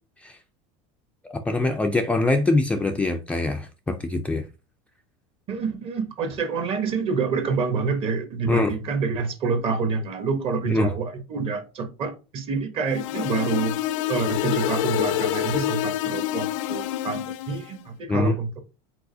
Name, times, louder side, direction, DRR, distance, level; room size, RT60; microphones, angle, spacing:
voice 1, 1.2-4.4 8.5-8.7 10.7-10.9 18.1-18.4, left 2 dB, 10° left, 0.3 m, -23 dB
voice 2, 5.5-13.8 14.1-18.6, right 4 dB, 35° right, 1.0 m, -27 dB
sound 1, 12.9-17.7, left 13 dB, 85° left, 0.4 m, -27 dB
4.6 x 4.1 x 2.6 m
supercardioid pair, 145°, 16 cm